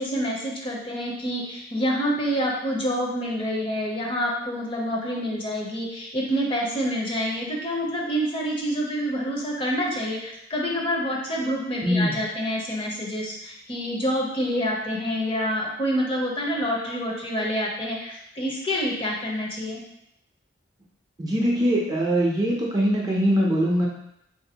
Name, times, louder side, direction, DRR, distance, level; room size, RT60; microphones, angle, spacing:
voice 1, 0.0-19.8, equal, 30° left, -2 dB, 0.6 m, -27 dB
voice 2, 11.8-12.1 21.2-23.9, equal, 20° right, -3 dB, 0.5 m, -22 dB
3.6 x 2.5 x 2.8 m, 0.76 s
head